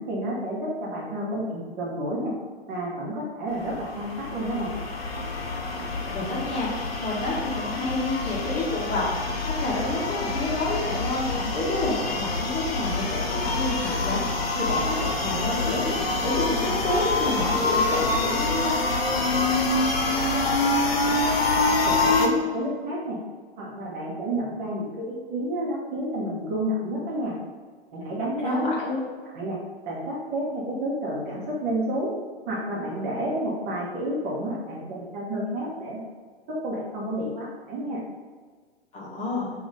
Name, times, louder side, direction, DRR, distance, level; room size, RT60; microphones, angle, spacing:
voice 1, 0.0-2.3 2.7-4.7 21.6-23.2 23.6-27.4 27.9-28.7 29.3-29.6 29.9-32.1 32.5-36.0 36.5-38.0, right 1 dB, 30° right, -4 dB, 1.4 m, -30 dB
sound 1, 3.5-22.3, left 3 dB, 70° left, 0.9 m, -26 dB
voice 2, 5.7-18.8 28.4-29.0 38.9-39.5, left 2 dB, 25° left, -5 dB, 1.8 m, -29 dB
6.3 x 3.0 x 4.8 m, 1.5 s
figure-of-eight pair, 105°, 31 cm